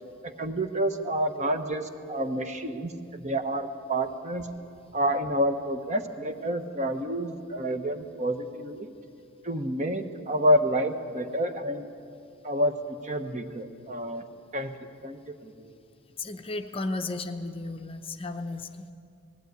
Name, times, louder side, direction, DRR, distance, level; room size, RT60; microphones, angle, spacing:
voice 1, 0.2-4.5 4.9-8.9 9.4-11.9 12.4-14.2 14.5-14.7 15.0-15.7, equal, 35° right, 7 dB, 1.1 m, -29 dB
voice 2, 16.2-18.9, left 2 dB, 25° left, 6 dB, 0.7 m, -34 dB
19.5 x 16.0 x 9.4 m, 2.5 s
head